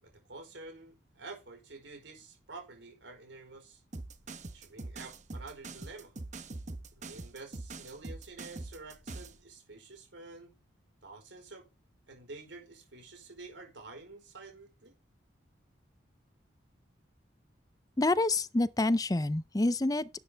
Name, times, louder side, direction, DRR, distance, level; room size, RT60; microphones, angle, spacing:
voice 1, 0.0-3.8 4.5-6.1 6.9-10.6 11.0-11.7 12.1-14.9, right 3 dB, 70° right, 4.7 m, -49 dB
sound 1, 3.9-9.4, right 2 dB, 40° right, 1.0 m, -43 dB
voice 2, 18.0-20.1, left 2 dB, 20° left, 0.5 m, -27 dB
11.5 x 7.9 x 3.4 m
head